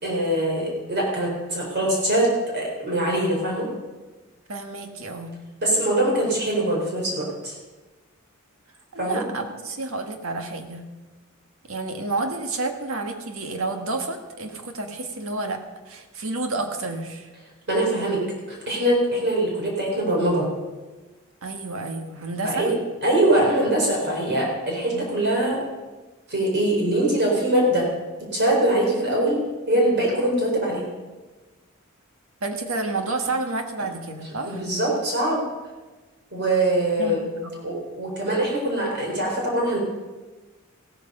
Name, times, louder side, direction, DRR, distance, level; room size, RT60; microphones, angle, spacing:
voice 1, 0.0-3.7 5.6-7.5 9.0-9.2 17.7-18.2 18.5-20.5 22.4-22.7 23.0-25.6 26.3-27.9 28.3-30.8 34.5-35.4 36.3-37.2 37.6-39.8, right 1 dB, 50° right, -2 dB, 4.3 m, -23 dB
voice 2, 4.5-5.3 8.9-10.9 11.7-15.6 15.9-17.3 21.4-22.7 24.9-25.2 32.4-34.6 37.0-37.6, right 3 dB, 65° right, 5 dB, 1.7 m, -30 dB
16.0 x 13.5 x 5.4 m, 1.2 s
head